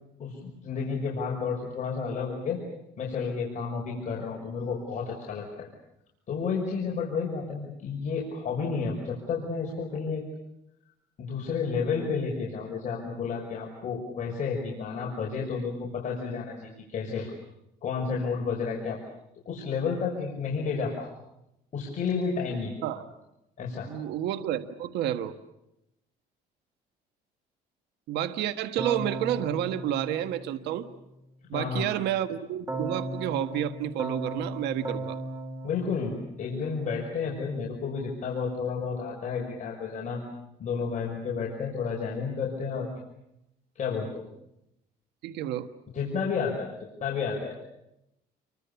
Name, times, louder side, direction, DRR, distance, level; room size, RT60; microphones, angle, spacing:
voice 1, 0.2-2.6 3.0-5.7 6.3-10.2 11.2-17.3 17.8-19.0 19.5-21.1 21.7-22.8 23.6-23.9 31.5-31.9 35.6-40.2 40.6-42.9 43.8-44.2 45.9-46.7 47.0-47.5, left 5 dB, 45° left, -2 dB, 5.8 m, -31 dB
voice 2, 23.9-25.3 28.1-30.9 31.5-35.2 45.2-45.7, right 11 dB, 85° right, 9 dB, 1.5 m, -30 dB
Keyboard (musical), 28.8-31.1 32.7-37.0, right 2 dB, 20° right, 5.4 m, -37 dB
28.5 x 24.5 x 7.1 m, 0.85 s
cardioid pair, 110°, 17 cm